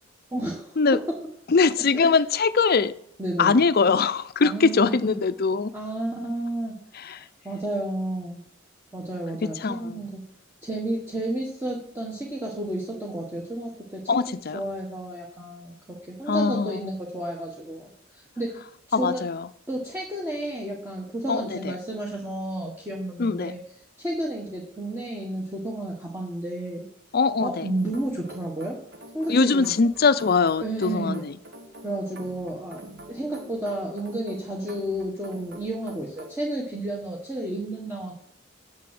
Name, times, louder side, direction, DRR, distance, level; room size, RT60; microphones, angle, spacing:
voice 1, 0.3-0.8 1.1-1.2 1.9-2.1 3.2-3.6 4.4-5.2 5.7-6.8 7.4-8.4 8.9-10.2 10.6-14.0 14.3-15.7 16.0-19.2 19.7-23.6 24.0-26.8 27.4-28.8 29.1-29.7 30.6-31.2 31.8-32.8 33.1-38.1, right 1 dB, 10° right, -3 dB, 1.5 m, -31 dB
voice 2, 1.5-2.9 3.4-5.7 7.0-7.2 9.6-10.0 14.1-14.6 16.3-16.9 18.9-19.5 21.3-21.6 23.2-23.5 27.1-27.7 29.3-31.3, left 4 dB, 50° left, 14 dB, 0.5 m, -22 dB
sound 1, 27.8-36.5, right 1 dB, 55° right, 1.5 m, -46 dB
7.6 x 7.3 x 7.7 m, 0.70 s
head